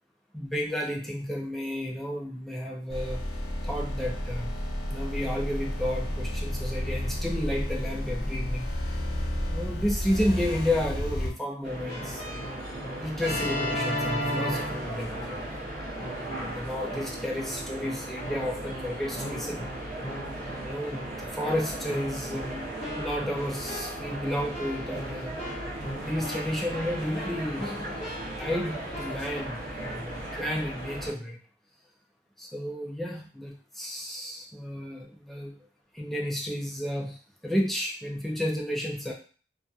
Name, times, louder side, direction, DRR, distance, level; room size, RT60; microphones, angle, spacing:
voice 1, 0.3-3.2 3.6-4.5 4.9-9.0 9.5-12.4 13.0-15.5 16.2-19.7 20.6-22.7 23.0-25.3 26.0-27.7 28.4-31.4 32.4-35.5 35.9-37.2 37.4-39.1, equal, ahead, -2 dB, 0.5 m, -32 dB
sound 1, 2.9-11.3, equal, 85° left, 0.9 m, -31 dB
sound 2, 11.6-31.1, right 1 dB, 55° right, 0.7 m, -37 dB
Keyboard (musical), 11.9-15.5 16.0-16.5 16.9-29.4, equal, 35° left, 1.1 m, -37 dB
2.6 x 2.4 x 2.4 m, 0.40 s
head